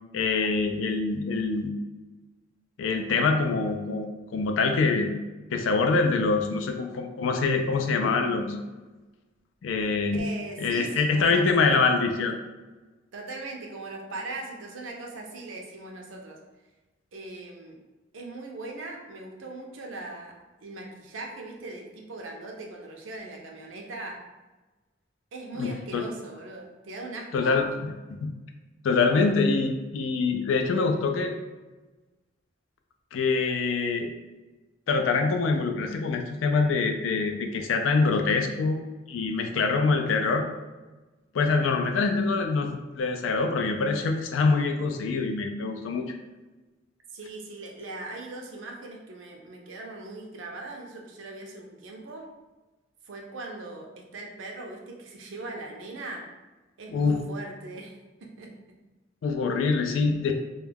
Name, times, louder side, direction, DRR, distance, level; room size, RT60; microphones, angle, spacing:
voice 1, 0.1-1.7 2.8-5.1 5.5-8.6 9.6-10.3 10.6-12.4 25.6-26.0 27.3-27.7 28.1-28.3 28.8-31.3 33.1-34.1 34.9-38.8 39.1-40.4 41.3-46.0 56.9-57.2 59.2-60.3, left 4 dB, 80° left, 4 dB, 0.4 m, -25 dB
voice 2, 10.1-11.8 13.1-16.4 17.1-17.8 18.1-24.2 25.3-27.6 47.1-52.3 53.0-56.3 56.8-58.5, right 2 dB, 90° right, 0 dB, 0.5 m, -40 dB
2.3 x 2.1 x 3.3 m, 1.2 s
head